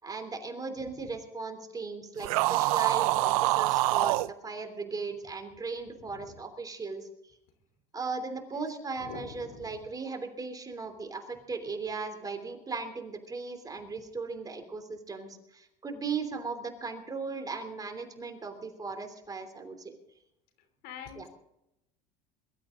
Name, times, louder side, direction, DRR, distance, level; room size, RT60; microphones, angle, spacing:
voice 1, 0.0-4.2 4.4-7.3 7.9-19.9 21.2-21.3, right 4 dB, 20° right, 6 dB, 3.1 m, -37 dB
sound 1, 2.2-4.3, right 19 dB, 80° right, 0.6 m, -25 dB
voice 2, 9.0-9.8 20.8-21.3, left 6 dB, 60° left, 9 dB, 3.1 m, -45 dB
22.5 x 13.0 x 3.8 m, 0.85 s
supercardioid pair, 105°, 18 cm